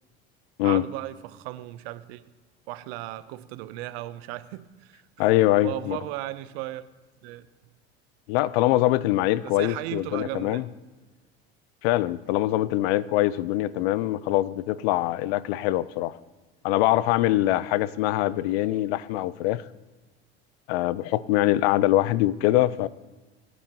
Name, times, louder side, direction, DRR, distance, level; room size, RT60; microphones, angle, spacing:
voice 1, 0.6-2.2 2.7-5.3 5.6-6.8 7.2-7.5 9.4-10.6, right 16 dB, 75° right, 14 dB, 0.8 m, -36 dB
voice 2, 5.2-6.0 8.3-10.6 11.8-16.1 16.6-19.6 20.7-22.9, left 15 dB, 75° left, 19 dB, 0.6 m, -23 dB
25.5 x 9.5 x 3.0 m, 1.2 s
hypercardioid pair, 80°, 32 cm